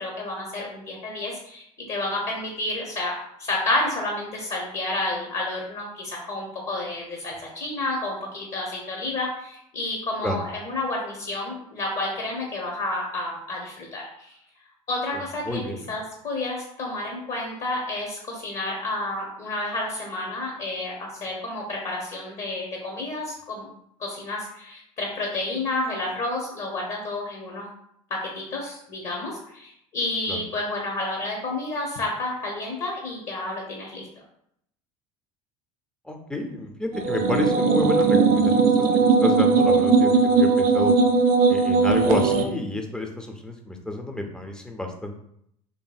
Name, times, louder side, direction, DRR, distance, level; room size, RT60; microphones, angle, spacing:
voice 1, 0.0-3.1 3.4-14.3 14.9-15.6 15.9-23.7 24.0-27.7 28.1-34.1, left 2 dB, 40° left, -1 dB, 0.7 m, -30 dB
voice 2, 15.4-15.9 30.3-30.4 36.1-40.9 41.5-45.2, left 1 dB, 5° left, 3 dB, 0.4 m, -30 dB
sound 1, 36.9-42.4, right 4 dB, 55° right, 0.4 m, -19 dB
2.6 x 2.6 x 2.3 m, 0.72 s
hypercardioid pair, 80°, 17 cm